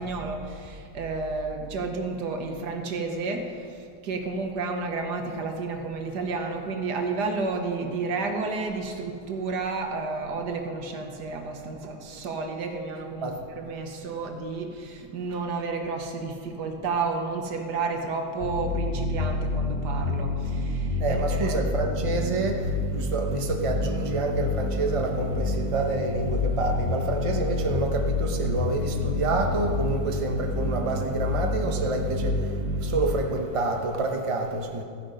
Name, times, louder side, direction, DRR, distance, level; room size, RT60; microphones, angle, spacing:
voice 1, 0.0-21.6, right 3 dB, 80° right, 4 dB, 1.7 m, -31 dB
sound 1, 18.4-33.0, left 2 dB, 60° left, 3.7 m, -28 dB
voice 2, 21.0-34.8, right 3 dB, 25° right, 2 dB, 0.9 m, -28 dB
14.0 x 9.8 x 5.2 m, 2.3 s
omnidirectional pair, 1.8 m